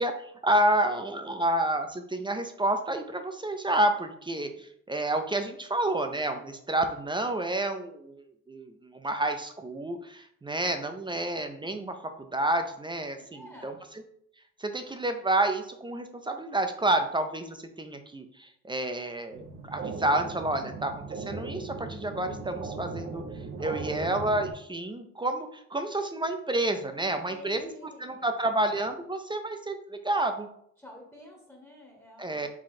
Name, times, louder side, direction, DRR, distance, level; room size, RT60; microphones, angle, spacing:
voice 1, 0.0-13.7 14.6-23.2 23.6-27.7 28.0-30.5 32.2-32.5, right 1 dB, 15° right, 7 dB, 0.4 m, -29 dB
voice 2, 13.2-13.8 26.9-28.3 30.8-32.5, left 1 dB, 10° left, 0 dB, 1.0 m, -49 dB
sound 1, 19.3-24.5, right 4 dB, 45° right, 0.8 m, -38 dB
4.7 x 2.3 x 4.1 m, 0.68 s
cardioid pair, 90°, 30 cm